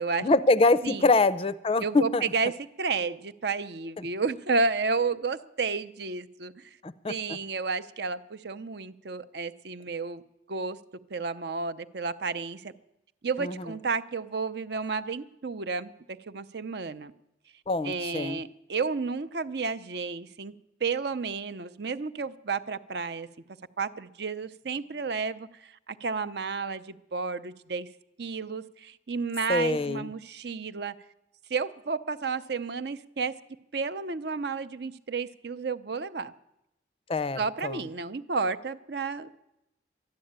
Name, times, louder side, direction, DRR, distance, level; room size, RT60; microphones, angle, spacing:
voice 1, 0.2-2.2 4.0-4.1 6.8-7.4 13.4-13.6 17.7-18.4 29.5-30.1 37.1-37.8, left 3 dB, 30° left, 15 dB, 0.5 m, -25 dB
voice 2, 1.8-6.7 7.1-10.2 10.5-10.8 11.1-12.7 13.2-17.1 17.8-20.5 20.8-23.3 23.8-27.9 28.2-31.0 31.5-33.4 33.7-36.3 37.4-39.3, right 4 dB, 60° right, 13 dB, 0.6 m, -31 dB
12.5 x 11.5 x 8.7 m, 0.86 s
head